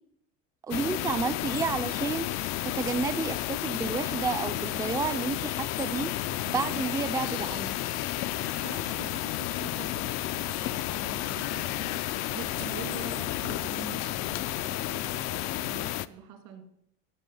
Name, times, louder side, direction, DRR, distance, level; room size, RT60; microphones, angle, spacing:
voice 1, 0.6-7.7, right 5 dB, 10° right, 10 dB, 0.5 m, -31 dB
sound 1, 0.7-16.1, left 15 dB, 50° left, 0.5 m, -32 dB
sound 2, 5.9-13.7, left 10 dB, 90° left, 1.1 m, -44 dB
voice 2, 8.5-16.6, right 7 dB, 65° right, 4 dB, 2.5 m, -45 dB
15.5 x 6.0 x 5.5 m, 0.74 s
cardioid pair, 130°, 34 cm